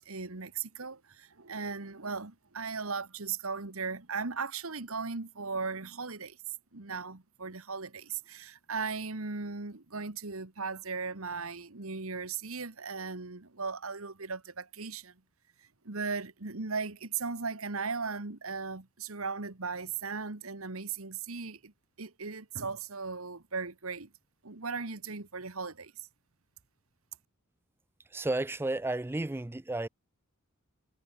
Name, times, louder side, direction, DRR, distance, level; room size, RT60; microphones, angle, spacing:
voice 1, 0.0-6.4 6.7-15.1 15.8-21.7 22.0-24.1 24.4-25.9, right 4 dB, 75° right, 1.8 m, -37 dB
voice 2, 28.1-29.9, right 2 dB, 10° right, 0.4 m, -32 dB
head